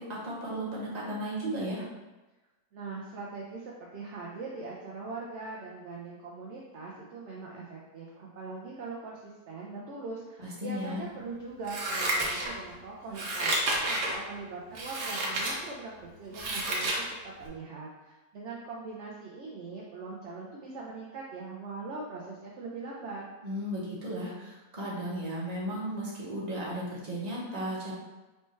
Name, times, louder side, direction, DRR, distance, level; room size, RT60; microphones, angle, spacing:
voice 1, 0.0-1.9 10.4-11.0 23.4-27.9, equal, 30° right, -6 dB, 1.1 m, -35 dB
voice 2, 2.7-23.2, right 3 dB, 60° right, -3 dB, 0.8 m, -41 dB
Scissors, 11.6-12.7 13.1-14.2 14.7-15.5 16.0-17.0 17.4-17.5, right 1 dB, 80° right, 1.4 m, -30 dB
4.4 x 3.2 x 3.1 m, 1.1 s
omnidirectional pair, 1.7 m